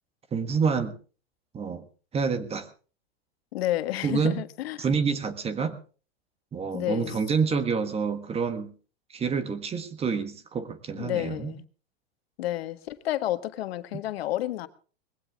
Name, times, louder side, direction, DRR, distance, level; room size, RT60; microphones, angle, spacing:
voice 1, 0.3-1.0 1.5-1.8 2.1-2.7 4.0-4.4 4.8-5.8 6.5-8.7 9.1-11.5, right 5 dB, 20° right, 11 dB, 1.6 m, -27 dB
voice 2, 3.5-4.8 6.7-7.2 10.9-11.6 12.4-14.7, left 14 dB, 70° left, 10 dB, 1.6 m, -30 dB
20.5 x 16.0 x 3.5 m, 0.39 s
hypercardioid pair, 135°, 32 cm